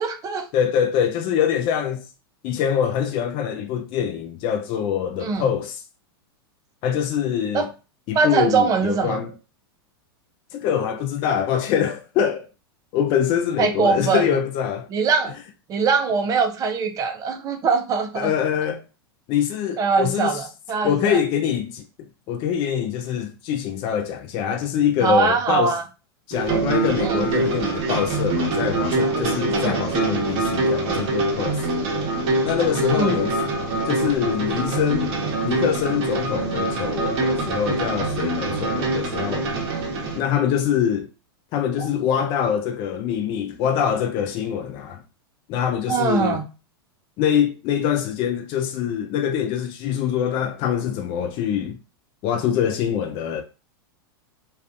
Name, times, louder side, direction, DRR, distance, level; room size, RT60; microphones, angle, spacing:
voice 1, 0.0-0.5 5.2-5.4 7.5-7.7 8.1-9.2 13.6-14.3 14.9-15.3 15.7-18.3 19.8-21.2 25.0-25.8 27.0-27.3 29.5-29.8 32.7-33.2 41.8-42.3 45.9-46.4, right 5 dB, 25° right, 0.5 m, -22 dB
voice 2, 0.5-2.1 2.4-5.8 6.8-7.6 8.1-9.3 10.5-12.5 12.9-14.9 18.1-18.8 19.3-20.5 20.8-21.8 22.3-25.8 26.3-31.7 32.4-33.4 33.9-35.2 35.4-39.5 40.1-41.1 41.5-45.0 45.5-46.4 47.2-51.8 52.2-53.4, left 8 dB, 40° left, 0.3 m, -24 dB
sound 1, 26.3-40.2, right 2 dB, 45° right, 0.9 m, -24 dB
2.5 x 2.3 x 2.4 m
hypercardioid pair, 120°, 13 cm